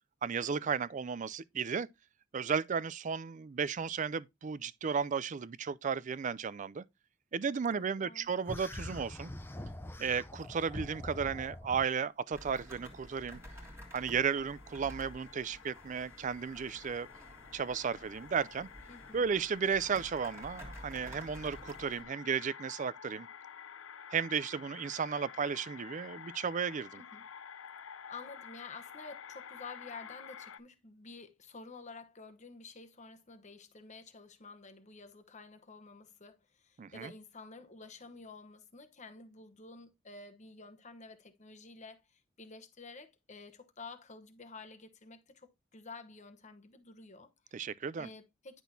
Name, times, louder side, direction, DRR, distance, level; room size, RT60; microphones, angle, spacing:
voice 1, 0.2-1.9 2.3-6.8 7.3-9.3 10.0-13.4 13.9-17.1 17.5-18.7 19.1-23.3 24.1-27.0 36.8-37.1 47.5-48.1, right 6 dB, 40° right, 0.4 m, -34 dB
voice 2, 8.0-8.3 18.9-19.3 26.9-27.2 28.1-47.7 48.0-48.6, left 3 dB, 35° left, 1.0 m, -51 dB
sound 1, 8.5-11.9, left 1 dB, 10° left, 0.6 m, -43 dB
sound 2, 12.3-22.0, equal, 15° right, 1.8 m, -52 dB
sound 3, 12.4-30.6, left 7 dB, 75° left, 0.6 m, -51 dB
10.0 x 6.1 x 2.7 m
head